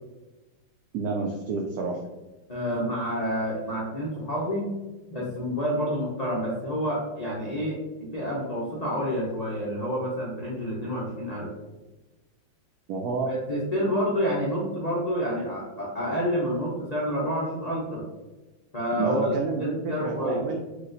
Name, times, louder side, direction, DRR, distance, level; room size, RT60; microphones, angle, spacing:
voice 1, 0.9-2.0 12.9-13.3 19.0-20.6, right 4 dB, 80° right, 2 dB, 0.8 m, -29 dB
voice 2, 2.5-4.7 5.1-11.5 13.3-18.0 18.7-19.3 19.6-20.4, equal, 75° left, -5 dB, 0.3 m, -28 dB
4.8 x 2.4 x 3.8 m, 1.1 s
omnidirectional pair, 2.1 m